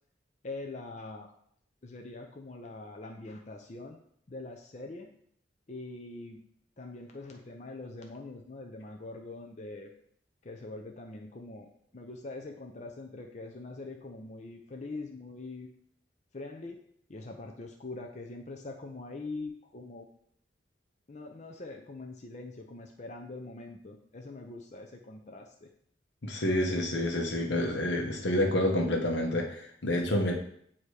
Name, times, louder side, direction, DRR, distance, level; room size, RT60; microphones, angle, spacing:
voice 1, 0.4-1.3 1.8-4.0 4.3-5.1 5.7-6.4 6.8-9.9 10.4-11.7 11.9-15.7 16.3-16.8 17.1-20.1 21.1-25.7, left 2 dB, 40° left, 2 dB, 0.6 m, -43 dB
voice 2, 26.2-30.3, left 1 dB, 75° left, 1 dB, 1.1 m, -28 dB
8.7 x 2.9 x 4.8 m, 0.66 s
head